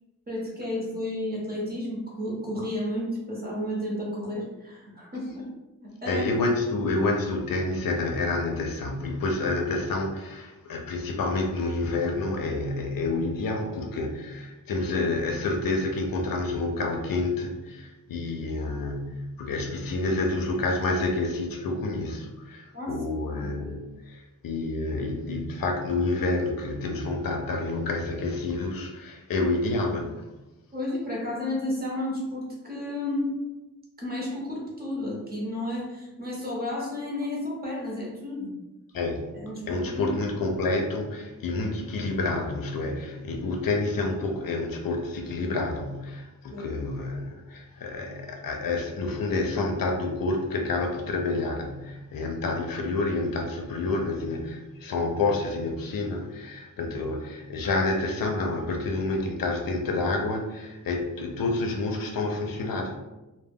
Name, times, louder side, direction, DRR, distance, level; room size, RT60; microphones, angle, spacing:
voice 1, 0.3-5.5 5.8-6.2 22.7-23.0 23.4-23.5 30.7-33.4 34.0-38.5 39.3-40.1 46.5-46.8 56.8-56.9, left 1 dB, 25° right, -4 dB, 0.8 m, -32 dB
voice 2, 6.1-30.1 38.9-39.3 39.7-62.9, left 2 dB, 75° left, 3 dB, 0.5 m, -28 dB
2.2 x 2.1 x 3.4 m, 1.1 s
wide cardioid pair, 140°, 34 cm